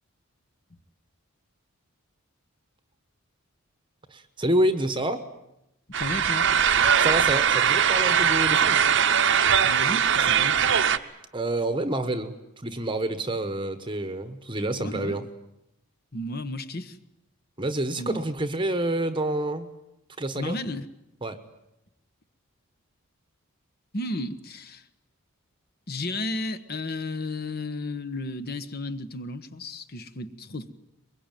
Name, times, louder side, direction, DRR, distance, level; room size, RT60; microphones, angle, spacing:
voice 1, 4.1-5.2 6.7-8.8 11.3-15.2 17.6-19.7 20.2-20.5 21.2-21.4, right 1 dB, 20° right, 10 dB, 1.1 m, -28 dB
voice 2, 5.9-6.5 9.6-10.6 14.8-15.2 16.1-17.0 18.0-18.2 20.3-20.9 23.9-24.9 25.9-30.7, left 2 dB, 45° left, 11 dB, 1.2 m, -33 dB
sound 1, 5.9-11.0, right 8 dB, 55° right, 0.9 m, -21 dB
23.0 x 22.0 x 9.1 m, 0.86 s
head